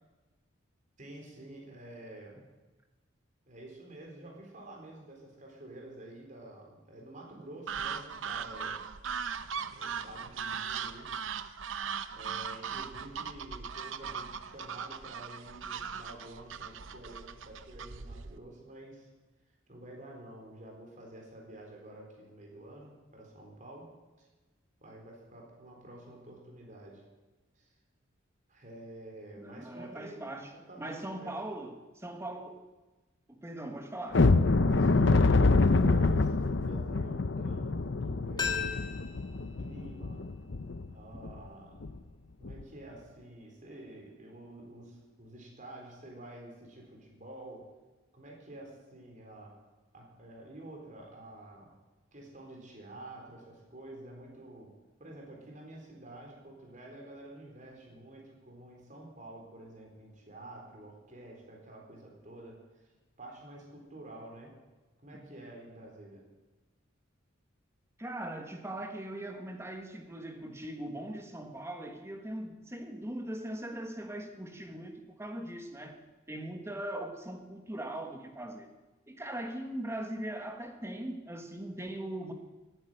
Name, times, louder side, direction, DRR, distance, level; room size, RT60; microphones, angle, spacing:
voice 1, 1.0-2.4 3.5-8.8 9.7-11.2 12.1-19.1 19.7-23.9 24.2-24.3 24.8-27.0 27.5-27.7 28.5-31.4 34.6-38.9 39.3-40.3 40.9-41.9 42.4-47.7 48.1-49.6 49.9-51.7 52.1-54.7 55.0-62.9 63.2-64.6 65.0-66.2, right 1 dB, 40° right, 0 dB, 4.1 m, -49 dB
sound 1, 7.7-18.4, right 6 dB, 75° right, 0.7 m, -39 dB
voice 2, 29.4-30.5 30.8-32.6 33.3-34.3 65.1-65.3 68.0-76.0 76.3-78.7 79.1-82.3, right 1 dB, 15° right, 5 dB, 1.3 m, -40 dB
sound 2, 34.1-40.9 41.2-41.4 41.8-42.0 42.4-42.6, left 3 dB, 60° left, 0.7 m, -26 dB
sound 3, 38.4-41.2 41.5-41.6, left 7 dB, 20° left, 2.6 m, -39 dB
17.0 x 9.8 x 7.8 m, 1.2 s
head